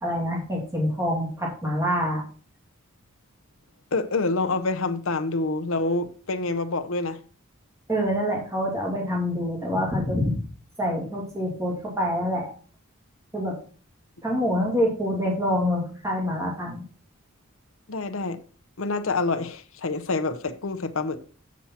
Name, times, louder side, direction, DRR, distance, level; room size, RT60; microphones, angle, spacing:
voice 1, 0.0-2.2 7.9-10.4 10.8-12.5 13.3-13.6 14.2-16.8, equal, 15° right, 2.3 m, -26 dB
voice 2, 3.9-7.2 17.9-18.4 18.8-21.2, left 3 dB, 65° left, 0.8 m, -27 dB
7.3 x 7.3 x 4.4 m
head